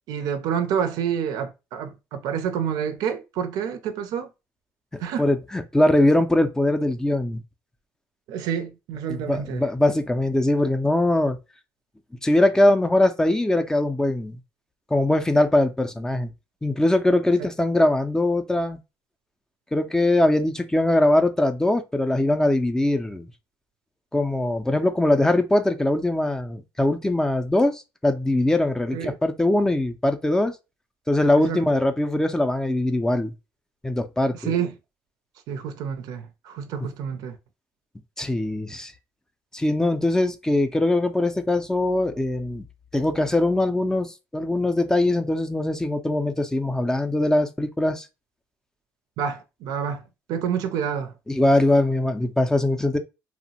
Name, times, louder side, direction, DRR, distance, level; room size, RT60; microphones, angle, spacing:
voice 1, 0.1-4.3 5.0-5.3 8.3-9.7 28.9-29.1 31.4-31.6 34.5-34.7 35.5-37.4 49.2-50.0 50.3-51.1, right 8 dB, 80° right, 0.4 m, -28 dB
voice 2, 5.2-7.4 9.1-11.4 12.2-14.4 14.9-16.3 16.6-18.8 19.7-23.3 24.1-30.5 31.1-33.3 33.8-34.5 38.2-38.9 39.5-42.7 42.9-48.1 51.3-53.0, left 1 dB, 10° left, 0.3 m, -21 dB
2.9 x 2.0 x 2.7 m
cardioid pair, 100°, 6 cm